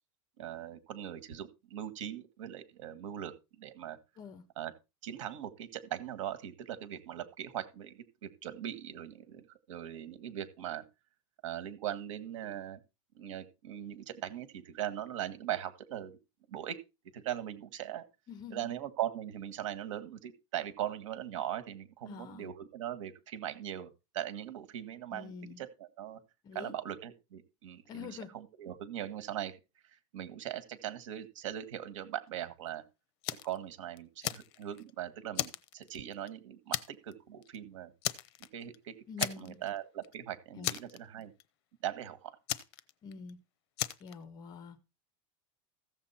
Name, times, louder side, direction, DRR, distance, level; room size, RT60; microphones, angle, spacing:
voice 1, 0.4-4.0 4.6-4.7 5.0-10.8 11.4-12.8 13.2-16.2 16.5-16.8 17.1-18.1 18.5-26.2 26.6-29.6 29.8-32.8 33.4-37.9 38.5-41.3 41.8-42.3, right 11 dB, 85° right, 1.8 m, -40 dB
voice 2, 18.3-18.7 22.0-22.5 25.1-25.6 26.4-26.7 27.9-28.3 39.1-39.6 40.5-40.7 43.0-43.4 44.0-44.8, left 6 dB, 25° left, 1.2 m, -46 dB
Fire, 33.2-33.6 34.0-34.9 35.3-36.3 36.7-37.1 37.4-37.6 38.0-38.8 39.2-39.8 40.0-40.1 40.6-41.4 42.5-43.3 43.8-44.1, left 14 dB, 55° left, 0.8 m, -36 dB
14.5 x 7.5 x 4.3 m
supercardioid pair, 170°, 16 cm